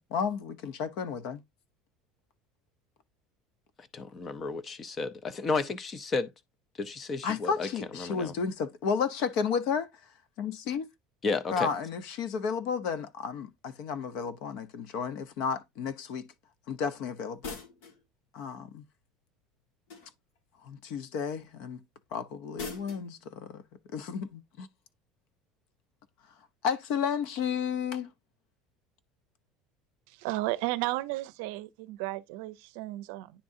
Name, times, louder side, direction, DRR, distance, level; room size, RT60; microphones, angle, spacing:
voice 1, 0.1-1.4 7.2-9.9 10.4-10.9 11.5-16.3 16.7-17.6 18.3-18.8 20.6-21.8 22.1-23.6 23.9-24.7 26.6-28.1, left 6 dB, 55° left, 0.8 m, -32 dB
voice 2, 3.9-6.3 6.8-8.3 11.2-11.7, left 3 dB, 25° left, 0.5 m, -32 dB
sound 1, 17.4-18.0 19.9-20.4 22.6-23.1, left 4 dB, 85° left, 1.9 m, -41 dB
voice 3, 30.2-33.3, right 18 dB, 70° right, 0.5 m, -33 dB
10.0 x 3.7 x 2.6 m
cardioid pair, 170°, 0 cm